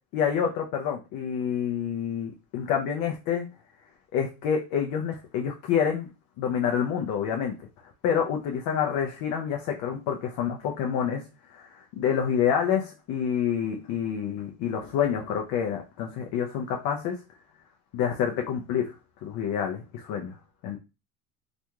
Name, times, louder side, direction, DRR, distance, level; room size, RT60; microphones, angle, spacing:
voice 1, 0.1-3.5 4.1-6.1 6.4-7.6 8.0-17.2 17.9-18.9 19.2-20.4 20.6-20.8, left 8 dB, 50° left, 1 dB, 0.6 m, -28 dB
2.8 x 2.6 x 2.2 m, 0.29 s
supercardioid pair, 110°, 42 cm